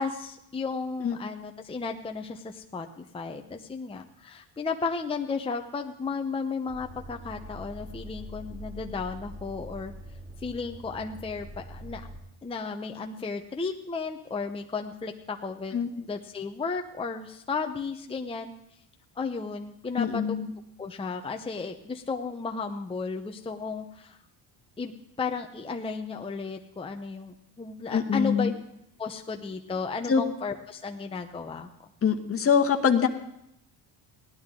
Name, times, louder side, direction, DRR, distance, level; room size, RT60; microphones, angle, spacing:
voice 1, 0.0-9.9 10.4-12.1 12.4-15.8 16.1-18.5 19.2-20.4 20.8-24.2 24.8-24.9 25.2-28.5 29.0-31.7, left 4 dB, 15° left, 4 dB, 0.7 m, -34 dB
sound 1, 6.7-12.2, equal, 30° right, 5.6 m, -43 dB
voice 2, 20.0-20.5 27.9-28.5 30.1-30.2 32.0-33.1, left 6 dB, 35° left, 5 dB, 1.2 m, -24 dB
17.0 x 11.5 x 3.7 m, 0.78 s
cardioid pair, 105°, 41 cm